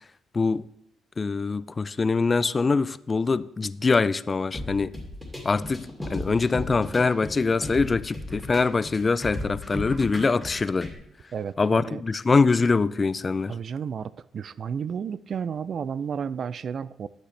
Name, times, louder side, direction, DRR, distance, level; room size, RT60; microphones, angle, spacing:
voice 1, 1.2-4.9 5.4-10.9 11.6-13.5, left 4 dB, 30° left, 0.3 m, -24 dB
sound 1, 4.5-10.9, left 1 dB, 5° left, 2.3 m, -35 dB
voice 2, 11.3-12.0 13.5-17.1, right 7 dB, 55° right, 0.3 m, -32 dB
11.0 x 8.0 x 3.3 m
cardioid pair, 90°, 0 cm